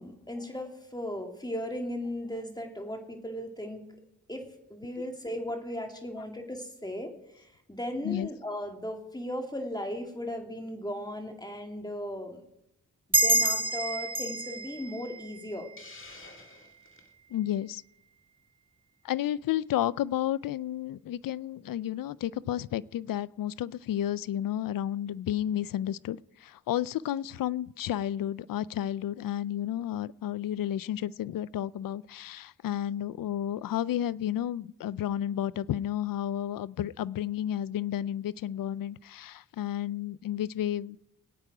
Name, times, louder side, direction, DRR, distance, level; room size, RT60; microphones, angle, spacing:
voice 1, 0.0-3.9 4.3-12.4 13.2-15.7, left 1 dB, 10° left, 3 dB, 2.4 m, -37 dB
sound 1, 13.1-16.2, right 2 dB, 15° right, 1.1 m, -28 dB
Hiss, 15.8-17.1, left 3 dB, 35° left, 2.1 m, -49 dB
voice 2, 17.3-17.8 19.0-41.0, left 11 dB, 70° left, 20 dB, 0.5 m, -32 dB
21.0 x 8.9 x 4.9 m, 0.84 s
cardioid pair, 75°, 35 cm